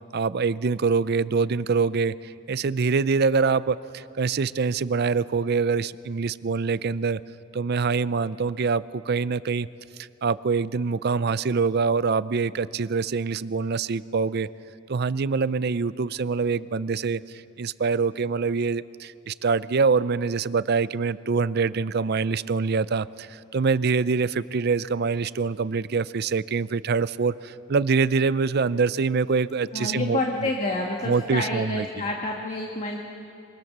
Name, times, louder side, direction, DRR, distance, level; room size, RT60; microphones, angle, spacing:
voice 1, 0.1-7.2 7.5-9.7 10.2-14.5 14.9-30.5 31.0-31.9, right 5 dB, 50° right, 17 dB, 0.5 m, -25 dB
voice 2, 29.7-33.0, left 2 dB, 35° left, 0 dB, 1.6 m, -28 dB
26.0 x 24.0 x 6.8 m, 2.6 s
head